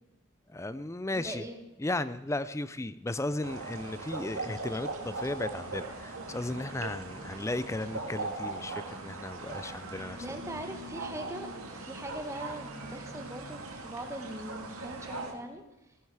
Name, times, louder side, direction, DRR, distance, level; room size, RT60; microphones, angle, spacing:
voice 1, 0.5-1.4 1.8-10.2, left 2 dB, 15° left, 15 dB, 0.4 m, -35 dB
voice 2, 1.1-1.6 4.2-4.6 10.2-11.5 11.7-15.6, right 1 dB, 15° right, 5 dB, 1.3 m, -41 dB
sound 1, 3.4-15.3, right 2 dB, 90° right, 2.3 m, -40 dB
18.5 x 10.5 x 4.8 m, 0.93 s
head